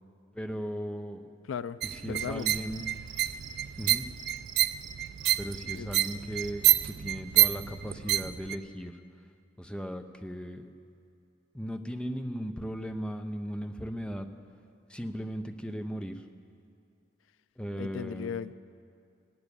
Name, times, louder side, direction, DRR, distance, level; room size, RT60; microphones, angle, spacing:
voice 1, 0.3-1.3 1.8-2.9 3.8-4.1 5.4-9.0 9.6-10.7 11.5-14.3 14.9-16.2 17.6-18.4, equal, 5° left, 7 dB, 0.6 m, -37 dB
voice 2, 1.5-1.8 2.1-2.5 5.7-5.9 17.8-18.5, left 7 dB, 85° left, 16 dB, 0.3 m, -36 dB
sound 1, 1.8-8.6, right 14 dB, 55° right, 0.3 m, -28 dB
Cricket, 2.4-3.5 3.8-3.9 4.2-5.6 6.0-6.5, right 11 dB, 85° right, 0.8 m, -46 dB
15.5 x 7.0 x 9.8 m, 2.5 s
head